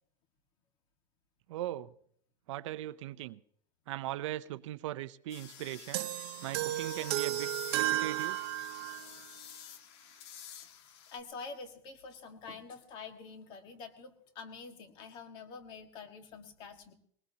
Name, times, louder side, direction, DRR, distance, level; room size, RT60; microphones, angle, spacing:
voice 1, 1.5-1.9 2.5-3.4 3.9-6.1 6.4-8.4, right 14 dB, 70° right, 0.7 m, -39 dB
sound 1, 5.3-11.2, left 9 dB, 60° left, 1.6 m, -49 dB
sound 2, 5.9-9.1, right 15 dB, 55° right, 1.0 m, -33 dB
voice 2, 11.1-16.9, left 4 dB, 30° left, 1.7 m, -47 dB
21.5 x 19.5 x 2.8 m
supercardioid pair, 180°, 16 cm